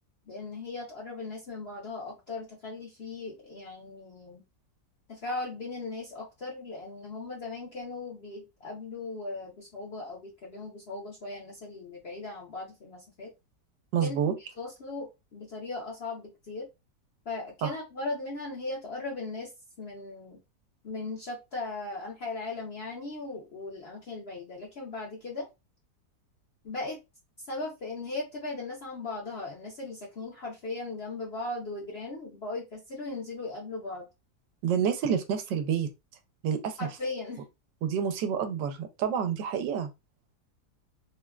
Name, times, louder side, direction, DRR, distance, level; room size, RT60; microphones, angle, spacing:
voice 1, 0.3-4.4 5.1-13.3 14.0-16.7 17.3-19.5 19.8-20.4 20.8-25.5 26.6-27.0 27.4-34.0 36.8-37.4, left 3 dB, 55° left, 0.7 m, -38 dB
voice 2, 13.9-14.3 17.6-17.7 34.6-35.9 36.4-36.8 37.8-39.9, right 8 dB, 90° right, 1.3 m, -28 dB
3.5 x 2.1 x 2.3 m
omnidirectional pair, 1.8 m